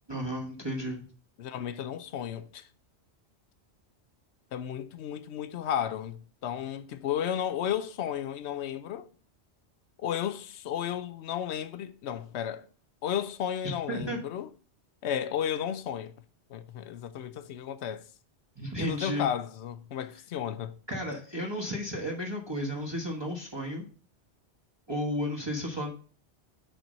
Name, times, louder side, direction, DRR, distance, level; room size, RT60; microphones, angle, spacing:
voice 1, 0.1-1.0 13.9-14.2 18.6-19.3 20.9-23.9 24.9-25.9, equal, 25° right, 1.2 m, -33 dB
voice 2, 1.4-2.7 4.5-9.1 10.0-12.7 13.0-14.5 15.0-16.1 16.5-18.1 18.8-20.8, left 9 dB, 75° left, 0.9 m, -33 dB
6.8 x 4.4 x 5.3 m
omnidirectional pair, 1.2 m